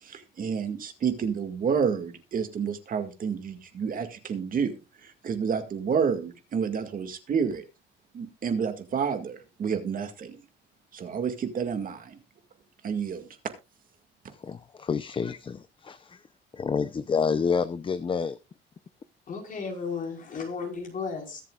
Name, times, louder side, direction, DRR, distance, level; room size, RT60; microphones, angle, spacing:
voice 1, 0.0-4.7 5.0-7.6 8.1-10.4 10.9-12.2 12.8-13.3, right 6 dB, 45° right, 2.1 m, -29 dB
voice 2, 14.3-16.2 16.5-18.4, left 5 dB, 25° left, 0.6 m, -29 dB
voice 3, 19.3-21.4, left 5 dB, 45° left, 4.8 m, -34 dB
22.0 x 7.5 x 2.4 m
cardioid pair, 125°, 20 cm